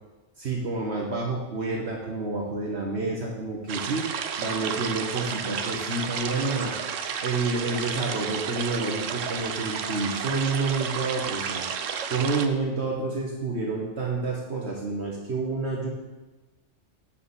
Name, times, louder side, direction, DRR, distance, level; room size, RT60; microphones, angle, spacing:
voice 1, 0.4-4.1 4.4-6.7 7.2-11.6 12.1-15.9, right 3 dB, 60° right, -2 dB, 1.5 m, -29 dB
sound 1, 3.7-12.5, right 7 dB, 90° right, 1.1 m, -32 dB
7.5 x 6.5 x 7.2 m, 1.1 s
omnidirectional pair, 1.3 m